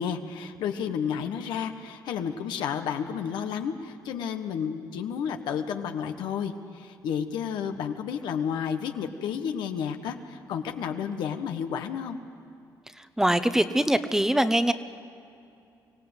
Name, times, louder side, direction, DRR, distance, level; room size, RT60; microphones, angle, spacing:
voice 1, 0.0-12.2, left 7 dB, 85° left, 6 dB, 1.3 m, -31 dB
voice 2, 13.2-14.7, right 1 dB, 5° right, 11 dB, 0.9 m, -22 dB
24.5 x 17.0 x 8.1 m, 2.6 s
cardioid pair, 80°, 8 cm